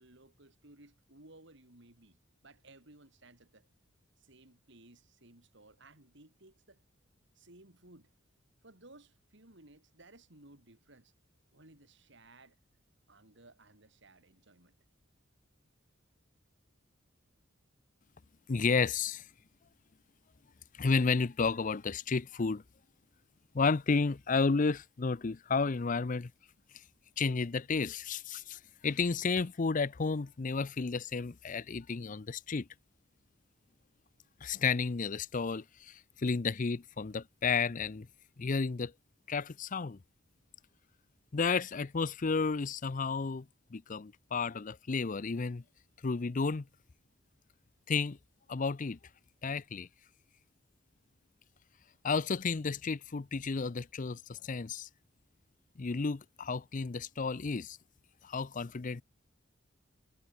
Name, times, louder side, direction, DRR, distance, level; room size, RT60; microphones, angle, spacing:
voice 1, 0.0-2.2 2.4-3.7 4.2-6.8 7.4-8.1 8.6-11.1 11.5-12.6 13.1-14.7, right 2 dB, 60° right, 4.2 m, -58 dB
voice 2, 18.5-19.2 20.8-22.6 23.5-26.3 27.2-32.7 34.4-38.1 38.4-38.9 39.3-40.0 41.3-43.5 43.7-45.6 46.0-46.7 47.9-48.2 48.5-49.0 49.4-49.9 52.0-54.9 55.8-57.8 58.2-59.0, left 4 dB, 40° left, 0.5 m, -32 dB
head